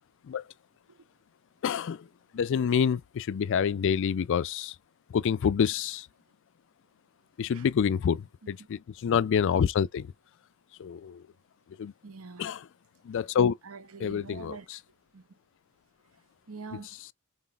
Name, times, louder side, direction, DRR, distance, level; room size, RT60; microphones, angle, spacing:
voice 1, 1.6-2.1 2.3-4.8 5.1-6.1 7.4-10.1 10.8-11.2 11.8-11.9 12.4-12.6 13.0-13.5 14.0-14.6, left 7 dB, 60° left, 0.3 m, -27 dB
voice 2, 12.0-12.5 13.6-14.7 15.1-15.4 16.5-17.0, right 4 dB, 80° right, 0.8 m, -45 dB
5.7 x 3.8 x 2.4 m
head